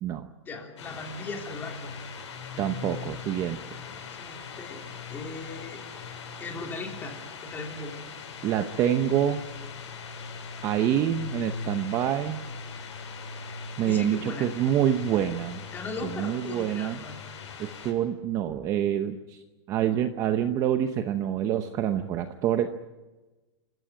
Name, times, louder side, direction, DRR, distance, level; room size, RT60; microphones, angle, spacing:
voice 1, 0.4-1.9 3.8-5.9 6.4-8.0 13.8-14.5 15.7-17.2, left 3 dB, 15° left, 2 dB, 3.3 m, -38 dB
sound 1, 0.8-17.9, left 5 dB, 90° left, 7.5 m, -40 dB
voice 2, 2.6-3.6 8.4-9.4 10.6-12.4 13.8-15.6 16.0-17.0 17.6-22.7, right 10 dB, 20° right, 8 dB, 0.8 m, -26 dB
28.0 x 15.5 x 9.3 m, 1.2 s
supercardioid pair, 170°, 15 cm